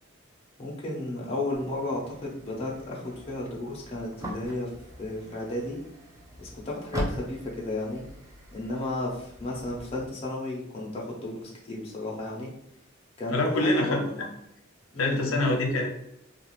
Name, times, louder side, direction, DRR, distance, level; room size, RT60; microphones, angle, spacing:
voice 1, 0.6-4.7 5.0-5.8 6.4-8.0 8.5-12.5 13.2-14.0 14.9-15.4, left 2 dB, 30° left, -3 dB, 0.6 m, -33 dB
sound 1, 1.5-10.1, equal, 15° right, 0.4 m, -41 dB
voice 2, 13.3-14.3 15.0-15.9, left 2 dB, 90° left, 1 dB, 0.6 m, -25 dB
2.4 x 2.3 x 3.0 m, 0.78 s
head